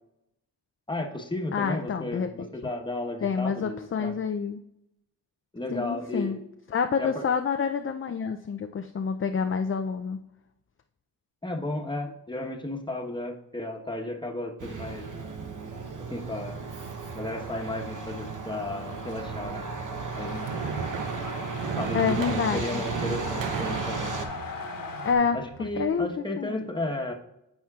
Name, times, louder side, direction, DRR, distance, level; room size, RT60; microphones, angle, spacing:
voice 1, 0.9-4.1 5.5-6.4 7.0-7.3 11.4-15.1 16.1-16.6 17.1-19.7 20.1-20.5 21.7-24.1 25.3-27.1, left 1 dB, 10° left, 2 dB, 1.1 m, -33 dB
voice 2, 1.5-2.5 3.2-4.6 5.7-6.4 6.7-10.2 20.8-20.9 21.9-22.9 25.0-26.1 26.4-26.7, left 6 dB, 30° left, 6 dB, 0.4 m, -28 dB
Truck, 14.6-24.3, right 4 dB, 45° right, 0.9 m, -35 dB
sound 1, 19.9-26.1, right 6 dB, 75° right, 0.8 m, -36 dB
sound 2, 20.1-25.2, left 5 dB, 50° left, 1.2 m, -41 dB
13.0 x 4.4 x 2.4 m, 0.85 s
cardioid pair, 45°, 44 cm